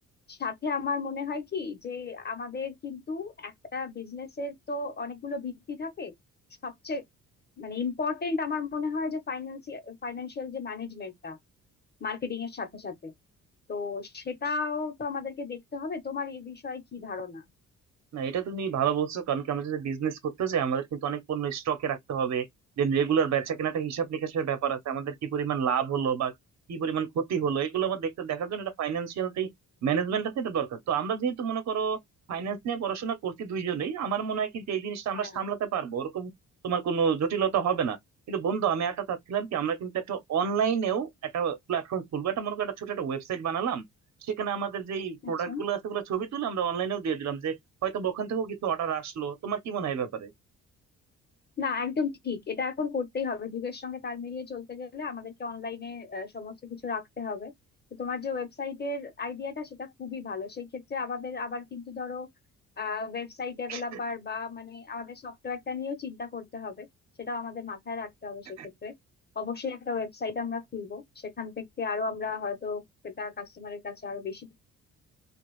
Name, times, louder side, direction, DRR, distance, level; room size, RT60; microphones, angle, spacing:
voice 1, 0.3-6.1 6.6-7.0 7.6-11.4 12.0-13.1 13.7-17.4 35.1-35.5 45.2-45.6 51.6-57.5 58.0-62.3 62.8-66.9 67.2-68.9 69.3-74.6, left 4 dB, 35° left, 1.1 m, -34 dB
voice 2, 18.1-22.5 22.8-26.3 26.7-29.5 29.8-32.0 32.3-36.3 36.6-38.0 38.3-43.8 44.3-47.6 47.8-50.3 63.7-63.8 68.6-68.7, right 7 dB, 60° right, 1.0 m, -29 dB
2.9 x 2.4 x 3.1 m
cardioid pair, 90°, 30 cm